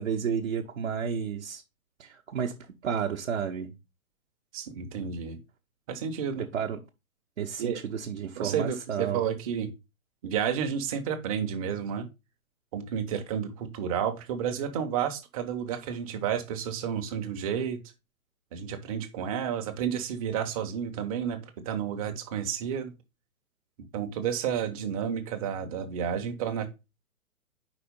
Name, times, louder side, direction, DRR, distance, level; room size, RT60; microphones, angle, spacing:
voice 1, 0.0-1.6 2.0-3.7 6.3-6.8 7.4-9.2, right 7 dB, 55° right, 0.9 m, -31 dB
voice 2, 4.5-5.4 5.9-6.4 7.6-7.8 8.4-9.7 10.2-12.1 12.7-17.8 18.5-22.9 23.9-26.7, right 8 dB, 25° right, 0.8 m, -31 dB
5.0 x 4.2 x 5.3 m
figure-of-eight pair, 125°, 43 cm